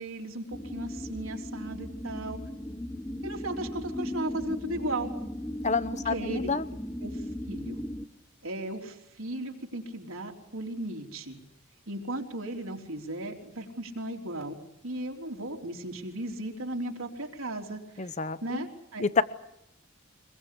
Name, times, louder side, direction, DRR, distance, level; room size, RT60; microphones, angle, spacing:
voice 1, 0.0-2.4 3.2-5.1 6.1-6.5 7.0-7.8 8.4-11.4 11.9-18.1 18.4-19.1, right 1 dB, 80° right, 1 dB, 3.6 m, -36 dB
sound 1, 0.5-8.1, left 1 dB, 10° left, 1.0 m, -37 dB
voice 2, 5.6-6.7 18.0-18.6 19.0-19.2, left 4 dB, 35° left, 14 dB, 1.0 m, -28 dB
24.5 x 22.0 x 8.5 m, 0.81 s
head